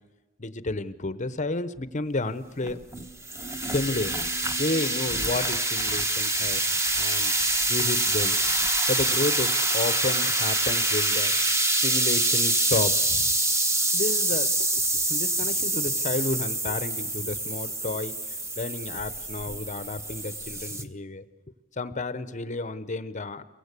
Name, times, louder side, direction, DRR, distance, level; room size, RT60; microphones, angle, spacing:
voice 1, 0.4-2.8 3.7-4.1 4.6-7.3 7.7-8.4 8.9-11.3 11.8-13.3 13.9-14.8 15.1-18.1 18.6-21.2 21.8-23.4, left 2 dB, 35° left, 13 dB, 0.9 m, -31 dB
sound 1, 2.6-20.8, right 2 dB, 15° right, 1.1 m, -26 dB
29.0 x 23.5 x 8.3 m, 1.1 s
head